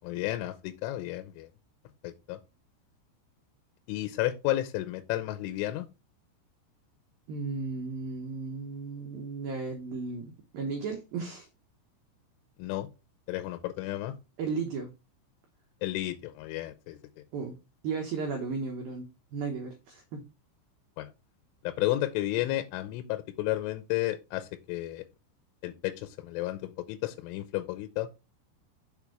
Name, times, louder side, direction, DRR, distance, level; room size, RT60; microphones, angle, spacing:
voice 1, 0.0-1.5 2.0-2.4 3.9-5.9 12.6-12.9 13.3-14.1 15.8-17.0 21.0-21.1 21.6-25.0 25.6-28.1, left 15 dB, 85° left, 2.9 m, -32 dB
voice 2, 7.3-11.5 14.4-14.9 17.3-17.6 17.8-20.2, right 4 dB, 90° right, 2.0 m, -35 dB
7.1 x 4.4 x 4.8 m
omnidirectional pair, 5.8 m